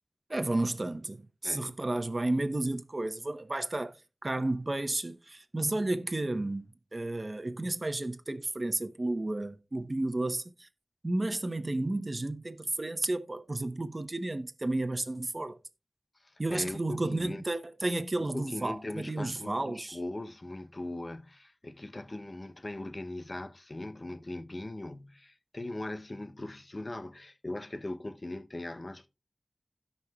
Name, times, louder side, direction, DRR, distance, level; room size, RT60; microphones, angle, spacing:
voice 1, 0.3-4.0 4.2-10.7 11.0-15.6 16.4-20.0, right 2 dB, 50° right, 0.9 m, -32 dB
voice 2, 1.4-1.8 16.2-17.4 18.2-29.1, left 2 dB, 45° left, 0.8 m, -40 dB
16.5 x 5.6 x 2.3 m
wide cardioid pair, 55°, 0 cm